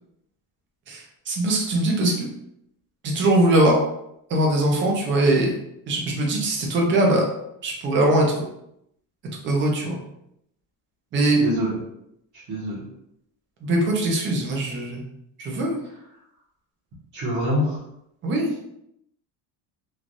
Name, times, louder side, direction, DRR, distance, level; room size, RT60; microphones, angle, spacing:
voice 1, 0.9-2.3 3.0-3.8 4.3-5.5 5.9-7.2 7.6-8.4 9.4-10.0 11.1-11.4 13.6-15.0 15.4-15.8 18.2-18.6, right 1 dB, 25° right, 0 dB, 0.5 m, -21 dB
voice 2, 11.4-11.7 12.5-12.8 17.1-17.8, equal, 45° right, -8 dB, 1.0 m, -25 dB
3.2 x 2.3 x 2.5 m, 0.78 s
cardioid pair, 175°, 44 cm